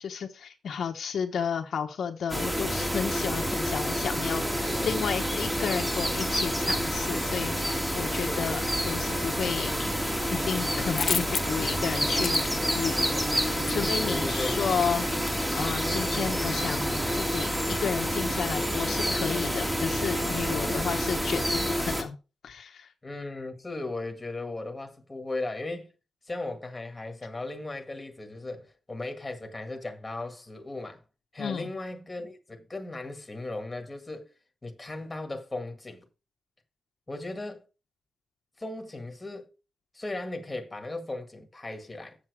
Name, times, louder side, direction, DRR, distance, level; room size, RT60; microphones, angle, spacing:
voice 1, 0.0-9.7 10.3-12.5 12.7-22.2 22.4-22.9 31.4-31.7, left 7 dB, 65° left, 1.1 m, -32 dB
sound 1, 2.3-22.0, equal, 10° right, 2.0 m, -28 dB
voice 2, 4.4-5.1 8.3-8.7 14.0-14.6 20.5-21.1 23.0-25.9 26.3-31.0 31.3-34.3 34.6-36.0 37.1-37.6 38.6-39.5 39.9-42.2, left 2 dB, 15° left, 1.8 m, -37 dB
sound 2, 9.2-9.8 10.1-15.7, left 6 dB, 45° left, 0.8 m, -34 dB
7.5 x 7.3 x 4.8 m
wide cardioid pair, 140°, 0 cm